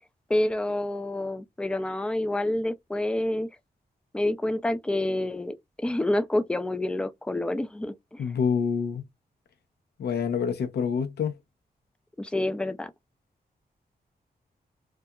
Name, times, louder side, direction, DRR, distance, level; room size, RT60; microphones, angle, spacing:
voice 1, 0.3-3.5 4.1-8.2 12.2-12.9, left 1 dB, 5° left, 0.3 m, -28 dB
voice 2, 8.2-9.0 10.0-11.4, left 6 dB, 85° left, 0.6 m, -27 dB
2.7 x 2.3 x 2.2 m
wide cardioid pair, 115°, 16 cm